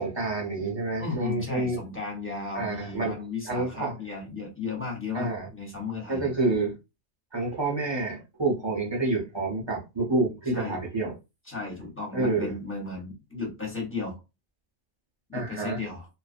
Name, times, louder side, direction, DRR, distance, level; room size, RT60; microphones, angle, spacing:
voice 1, 0.0-1.8 2.5-3.2 3.5-4.0 5.1-5.5 6.1-6.8 7.3-11.1 12.1-12.5 15.3-15.8, right 2 dB, 30° right, 0.5 m, -28 dB
voice 2, 1.0-6.3 10.5-10.8 11.5-14.2 15.3-16.1, left 4 dB, 10° left, 0.7 m, -35 dB
2.5 x 2.3 x 2.4 m
omnidirectional pair, 1.3 m